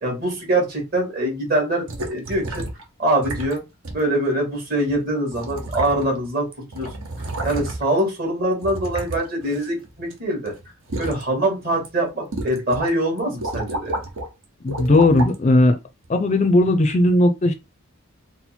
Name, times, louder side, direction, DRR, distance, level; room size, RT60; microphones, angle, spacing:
voice 1, 0.0-2.6 3.0-3.6 3.9-6.5 6.7-6.9 7.2-10.5 11.0-14.0, right 1 dB, 40° right, 1.9 m, -23 dB
sound 1, 1.9-2.8 3.2-3.6 3.8-4.0 4.9-5.0 5.3-6.3 6.5-8.0 8.6-10.1 10.5-11.2 11.7-11.9 12.3-12.9 13.2-14.3 14.7-15.4 16.0-16.1, right 1 dB, 75° right, 1.1 m, -30 dB
voice 2, 14.6-15.8 16.1-17.5, left 1 dB, 30° left, 0.4 m, -17 dB
4.2 x 2.1 x 4.3 m
head